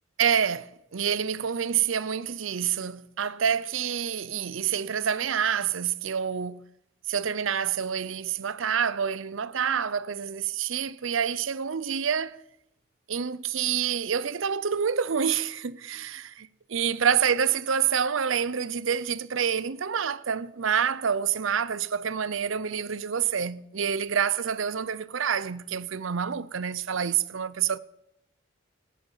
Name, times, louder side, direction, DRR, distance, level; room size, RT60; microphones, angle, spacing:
voice 1, 0.2-6.6 7.1-12.4 13.1-27.8, right 7 dB, 80° right, 0.6 m, -27 dB
18.0 x 12.0 x 5.6 m
head